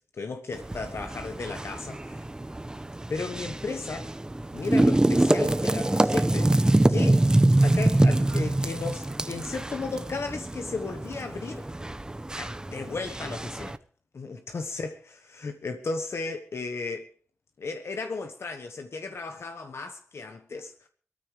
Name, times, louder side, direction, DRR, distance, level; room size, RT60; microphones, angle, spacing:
voice 1, 0.2-2.3 3.1-4.1 4.5-7.3 7.6-11.6 12.4-13.8 14.1-15.0 15.3-17.1 17.6-20.9, left 4 dB, 80° left, 1.1 m, -35 dB
sound 1, 0.5-13.8, right 1 dB, 15° right, 0.7 m, -25 dB
24.0 x 14.0 x 3.3 m
wide cardioid pair, 115°, 4 cm